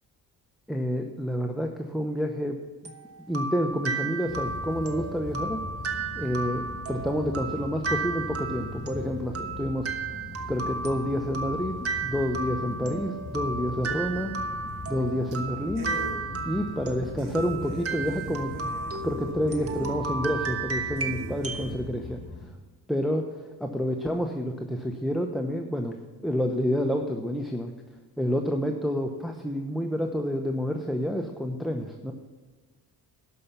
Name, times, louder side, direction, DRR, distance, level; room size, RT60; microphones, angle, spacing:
voice 1, 0.7-2.9 3.3-5.6 6.1-9.9 10.5-14.3 14.9-15.9 16.4-18.7 19.0-22.2 22.9-26.0 26.2-27.7 28.2-32.1, equal, ahead, 3 dB, 0.8 m, -29 dB
sound 1, 2.8-21.7, right 4 dB, 40° right, 1.3 m, -34 dB
sound 2, 4.3-22.5, left 3 dB, 45° left, 1.6 m, -40 dB
sound 3, 14.7-15.0 15.3-15.4 15.8-16.2 16.7-16.8 17.2-20.0 20.5-20.6 21.0-21.7, right 3 dB, 90° right, 1.7 m, -41 dB
12.0 x 5.7 x 6.8 m, 1.4 s
cardioid pair, 80°, 38 cm